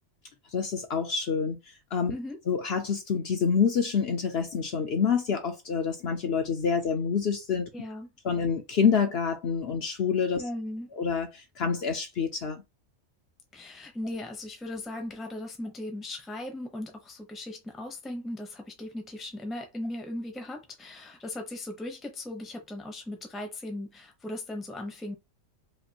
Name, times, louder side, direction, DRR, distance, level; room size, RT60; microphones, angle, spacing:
voice 1, 0.5-1.6 1.9-2.1 2.5-7.7 8.2-10.5 11.0-12.6, left 6 dB, 55° left, 0.8 m, -27 dB
voice 2, 7.7-8.1 10.4-10.9 13.5-25.2, left 1 dB, ahead, 0.7 m, -38 dB
5.1 x 2.5 x 2.8 m
omnidirectional pair, 1.4 m